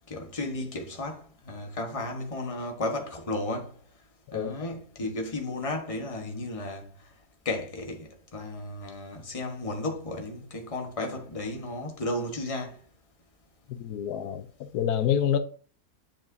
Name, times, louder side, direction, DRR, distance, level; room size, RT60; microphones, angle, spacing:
voice 1, 0.1-3.7 4.3-6.9 7.4-12.8, left 2 dB, 25° left, 1.2 m, -34 dB
voice 2, 4.3-4.7 13.7-15.4, left 9 dB, 85° left, 1.2 m, -28 dB
8.8 x 5.1 x 2.7 m
omnidirectional pair, 1.6 m